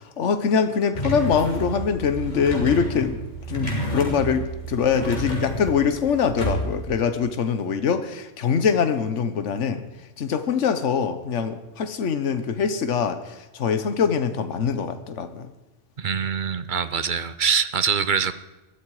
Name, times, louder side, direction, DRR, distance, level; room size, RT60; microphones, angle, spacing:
voice 1, 0.0-3.2 3.5-9.8 10.2-15.5, left 6 dB, 75° left, 10 dB, 1.4 m, -23 dB
sound 1, 0.9-6.9, right 1 dB, 40° left, 3.3 m, -30 dB
voice 2, 16.0-18.3, right 6 dB, 45° right, 13 dB, 0.8 m, -24 dB
21.0 x 13.5 x 4.8 m, 1.1 s
omnidirectional pair, 1.2 m